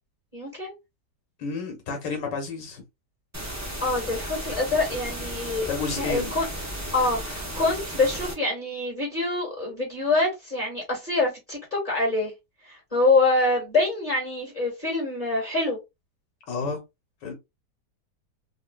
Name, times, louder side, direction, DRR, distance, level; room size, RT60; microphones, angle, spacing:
voice 1, 0.3-0.7 3.8-5.7 6.0-6.5 6.9-12.3 12.6-15.8, left 2 dB, 20° left, 1.7 m, -25 dB
voice 2, 1.4-2.8 5.7-6.3 16.5-16.8 17.2-17.3, left 4 dB, 80° left, 1.8 m, -30 dB
sound 1, 3.3-8.3, right 1 dB, 15° right, 0.5 m, -34 dB
3.8 x 2.6 x 2.3 m
omnidirectional pair, 1.9 m